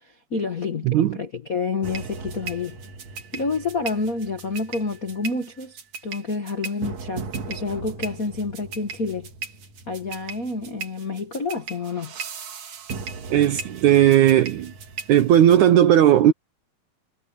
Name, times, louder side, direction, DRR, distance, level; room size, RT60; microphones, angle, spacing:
voice 1, 0.0-2.8 3.3-9.3 9.9-12.1, left 3 dB, 85° left, 0.7 m, -29 dB
voice 2, 0.9-1.2 13.3-14.7 15.1-16.3, right 11 dB, 75° right, 1.8 m, -16 dB
sound 1, 1.8-15.6, right 5 dB, 50° right, 3.1 m, -37 dB
omnidirectional pair, 4.5 m